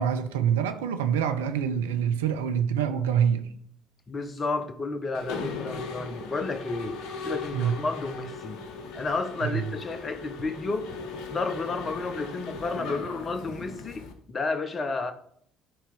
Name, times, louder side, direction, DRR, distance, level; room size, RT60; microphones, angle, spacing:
voice 1, 0.0-3.4 7.5-7.8 9.4-9.6, right 8 dB, 75° right, 0.6 m, -25 dB
voice 2, 4.1-7.0 7.2-8.6 8.9-10.9 11.3-15.1, left 3 dB, 35° left, 0.9 m, -31 dB
Mechanisms, 5.1-14.1, left 4 dB, 60° left, 0.9 m, -38 dB
11.5 x 4.3 x 3.6 m
figure-of-eight pair, 50°, 0 cm